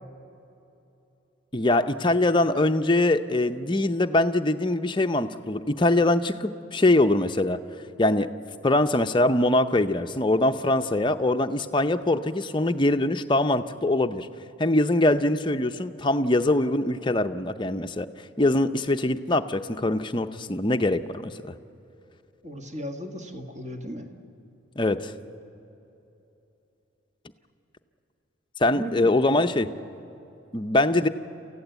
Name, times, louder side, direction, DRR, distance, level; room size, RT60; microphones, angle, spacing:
voice 1, 1.5-7.6 8.0-8.3 8.6-14.3 14.6-18.1 18.4-21.5 24.8-25.1 28.6-29.7 30.5-31.1, left 2 dB, 25° left, 8 dB, 0.6 m, -23 dB
voice 2, 22.4-24.1 28.7-29.1, equal, 35° right, 3 dB, 1.8 m, -35 dB
28.0 x 15.5 x 8.2 m, 3.0 s
head